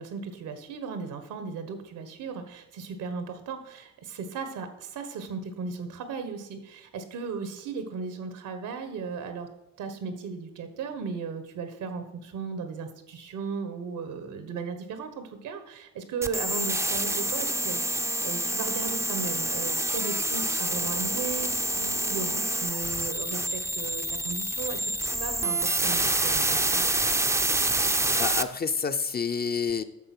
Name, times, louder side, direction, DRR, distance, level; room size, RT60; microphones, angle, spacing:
voice 1, 0.0-9.5 9.8-26.8, right 5 dB, 85° right, 8 dB, 1.4 m, -36 dB
sound 1, 16.2-28.4, right 2 dB, 10° right, 0.5 m, -27 dB
voice 2, 28.2-29.8, left 6 dB, 30° left, 9 dB, 0.7 m, -28 dB
9.2 x 6.5 x 6.1 m, 0.89 s
cardioid pair, 90°, 30 cm